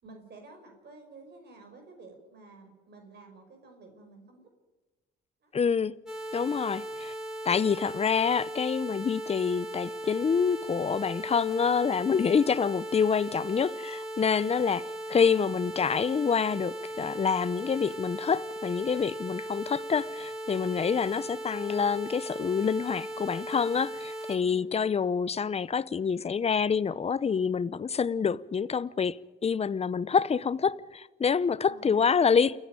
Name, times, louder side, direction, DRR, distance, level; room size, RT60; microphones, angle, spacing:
voice 1, 0.0-4.5 5.4-5.5 14.4-14.8 24.3-24.8 31.3-32.0, right 3 dB, 55° right, 5.1 m, -52 dB
voice 2, 5.5-5.9 6.3-7.1 7.4-14.8 15.1-32.6, left 6 dB, 30° left, 0.7 m, -27 dB
sound 1, 6.1-24.4, right 1 dB, 5° right, 4.1 m, -38 dB
29.0 x 9.8 x 9.0 m
cardioid pair, 90°, 20 cm